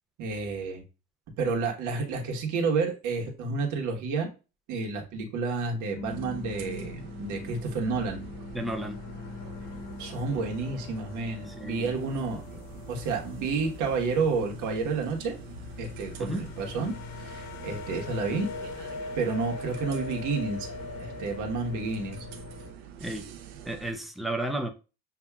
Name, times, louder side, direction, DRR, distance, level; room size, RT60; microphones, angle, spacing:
voice 1, 0.2-0.8 1.4-4.3 4.7-8.2 10.0-12.6 12.9-15.3 15.8-18.5 19.1-20.7 21.0-22.3, right 4 dB, 60° right, 1.4 m, -30 dB
sound 1, 5.9-22.7, left 4 dB, 80° left, 1.0 m, -41 dB
sound 2, 6.1-23.9, right 9 dB, 80° right, 0.9 m, -46 dB
voice 2, 8.5-9.0 11.4-12.0 16.2-16.5 23.0-23.3 23.7-24.7, right 1 dB, ahead, 0.3 m, -33 dB
6.9 x 2.8 x 2.3 m
cardioid pair, 150°, 35 cm